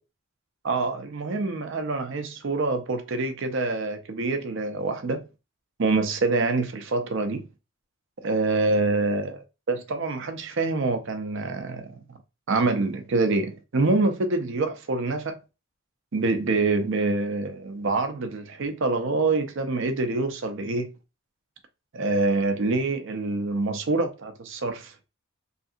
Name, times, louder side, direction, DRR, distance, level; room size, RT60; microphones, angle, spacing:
voice 1, 0.6-5.2 5.8-7.5 8.2-9.4 9.7-12.2 12.5-15.4 16.1-20.9 21.9-24.9, right 3 dB, 60° right, 0.6 m, -26 dB
3.2 x 2.7 x 2.4 m
head